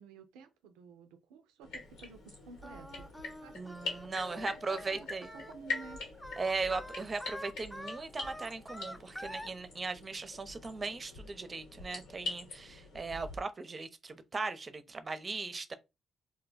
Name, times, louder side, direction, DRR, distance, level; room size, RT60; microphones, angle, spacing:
voice 1, 0.0-3.1 3.4-3.8 4.2-6.0, right 5 dB, 90° right, 0.4 m, -53 dB
sound 1, 1.6-13.4, left 3 dB, 85° left, 1.4 m, -44 dB
sound 2, 2.3-2.9 3.3-7.5 8.0-9.3 10.6-10.8, left 3 dB, 60° left, 1.0 m, -56 dB
Singing, 2.6-9.5, equal, 5° left, 0.6 m, -46 dB
voice 2, 3.5-5.3 6.4-15.7, right 3 dB, 40° right, 0.5 m, -38 dB
2.5 x 2.2 x 3.9 m
supercardioid pair, 55°, 0 cm